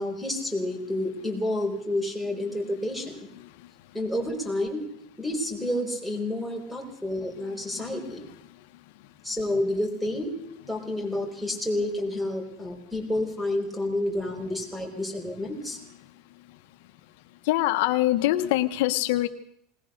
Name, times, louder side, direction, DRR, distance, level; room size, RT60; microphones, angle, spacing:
voice 1, 0.0-3.3 3.9-4.9 5.2-8.3 9.2-10.3 10.7-15.8, left 1 dB, 5° right, 4 dB, 5.2 m, -29 dB
voice 2, 17.5-19.3, left 15 dB, 70° left, 8 dB, 1.2 m, -23 dB
20.5 x 19.0 x 6.7 m, 0.72 s
supercardioid pair, 140°, 0 cm